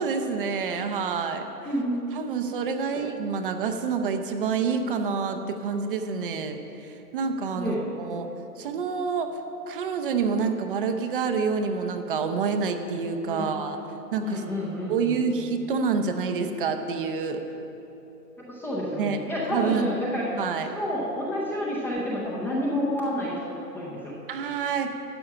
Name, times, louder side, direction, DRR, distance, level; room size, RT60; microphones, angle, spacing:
voice 1, 0.0-1.5 2.1-8.3 8.6-9.4 9.7-13.8 14.1-14.4 14.9-17.4 19.0-19.2 19.5-19.9 20.4-20.7 24.3-24.9, right 5 dB, 35° right, 6 dB, 0.7 m, -27 dB
voice 2, 14.2-15.2 18.5-20.3 20.7-24.2, equal, 5° left, -6 dB, 0.6 m, -29 dB
12.5 x 8.5 x 5.6 m, 3.0 s
hypercardioid pair, 135°, 48 cm